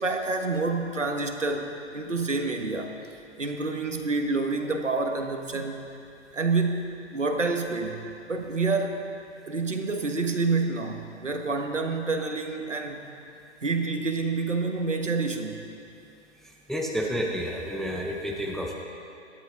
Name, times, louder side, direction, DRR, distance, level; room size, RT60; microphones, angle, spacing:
voice 1, 0.0-2.9 3.4-5.9 6.3-9.0 9.5-13.0 13.6-15.6, right 3 dB, 85° right, 4 dB, 1.5 m, -28 dB
voice 2, 16.7-18.8, equal, ahead, 0 dB, 0.6 m, -30 dB
17.5 x 12.5 x 3.8 m, 2.7 s
figure-of-eight pair, 115°, 36 cm